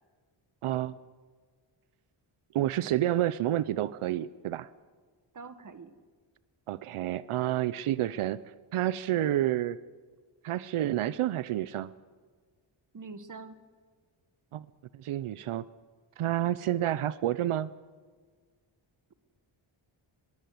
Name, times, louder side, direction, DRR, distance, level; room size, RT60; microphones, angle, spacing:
voice 1, 0.6-1.0 2.5-4.7 6.7-8.4 8.7-9.8 10.4-11.9 14.5-14.7 14.9-15.7 16.2-17.7, right 13 dB, 85° right, 16 dB, 0.8 m, -29 dB
voice 2, 5.3-5.9 12.9-13.6, right 4 dB, 40° right, 11 dB, 1.7 m, -44 dB
22.5 x 22.0 x 8.0 m, 1.5 s
wide cardioid pair, 155°, 49 cm